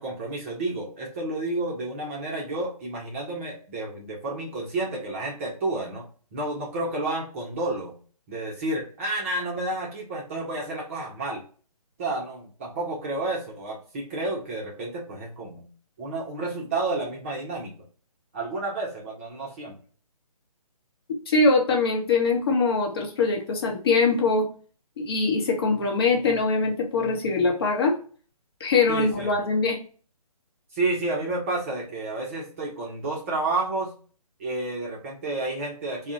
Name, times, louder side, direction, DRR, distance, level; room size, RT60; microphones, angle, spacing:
voice 1, 0.0-6.1 6.3-7.9 8.3-11.4 12.0-15.7 16.0-17.7 18.3-19.8 28.9-29.3 30.7-33.9 34.4-36.1, right 2 dB, 20° right, -3 dB, 0.6 m, -30 dB
voice 2, 21.3-24.5 25.0-27.9 28.6-29.8, left 3 dB, 40° left, 0 dB, 0.8 m, -22 dB
2.4 x 2.1 x 3.7 m, 0.41 s
figure-of-eight pair, 145°, 20 cm